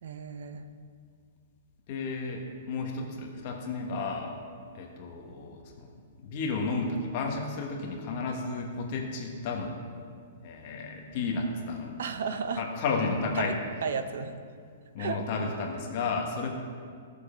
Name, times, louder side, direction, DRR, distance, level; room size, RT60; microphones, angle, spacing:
voice 1, 0.0-0.7 12.0-12.7 13.4-13.5 13.8-14.3 15.0-15.2, right 6 dB, 60° right, 9 dB, 0.7 m, -33 dB
voice 2, 1.9-4.3 4.7-5.6 6.2-9.8 10.4-12.0 12.6-13.6 14.9-16.5, left 4 dB, 30° left, 1 dB, 1.4 m, -32 dB
15.5 x 6.9 x 5.2 m, 2.2 s
hypercardioid pair, 180°, 0 cm